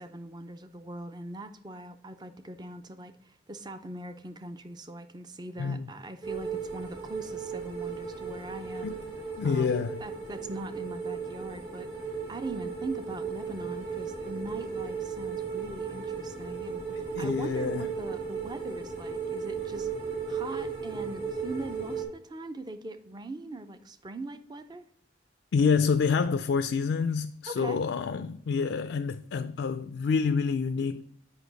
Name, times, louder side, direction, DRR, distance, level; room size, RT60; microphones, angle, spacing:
voice 1, 0.0-8.9 9.4-19.9 20.3-24.9 27.5-27.8, right 2 dB, 20° right, 0.5 m, -41 dB
voice 2, 5.6-5.9 8.8-9.0 9.4-10.0 16.9-17.9 25.5-31.0, left 5 dB, 75° left, 0.4 m, -28 dB
sound 1, 6.2-22.0, right 6 dB, 55° right, 2.1 m, -36 dB
8.1 x 5.5 x 4.0 m
head